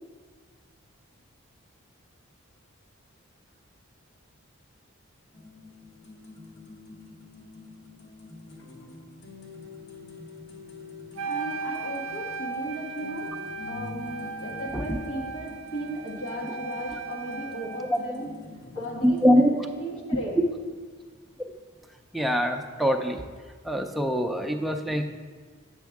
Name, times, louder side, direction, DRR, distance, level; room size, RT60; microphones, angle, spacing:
sound 1, 5.3-19.3, left 3 dB, 55° left, 1.1 m, -46 dB
voice 1, 11.2-13.4 13.7-18.4 18.7-20.4, equal, 80° left, -1 dB, 1.5 m, -36 dB
Wind instrument woodwind instrument, 11.2-18.1, right 4 dB, 80° right, 0.5 m, -37 dB
voice 2, 19.0-19.5 22.1-23.2 23.6-25.1, equal, ahead, 3 dB, 0.4 m, -23 dB
8.3 x 6.2 x 3.5 m, 1.5 s
head